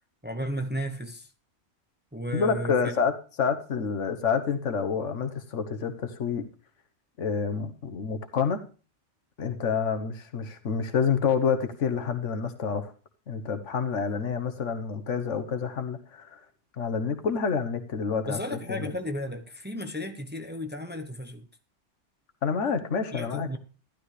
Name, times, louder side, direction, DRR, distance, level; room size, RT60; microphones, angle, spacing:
voice 1, 0.2-1.3 2.1-2.9 18.3-21.5 23.1-23.6, equal, 10° right, 0.9 m, -34 dB
voice 2, 2.3-3.1 3.4-6.4 7.2-8.6 9.4-12.9 13.3-16.4 16.7-18.4 18.7-18.9 22.4-23.5, left 6 dB, 80° left, 1.5 m, -28 dB
12.0 x 12.0 x 3.3 m
omnidirectional pair, 1.2 m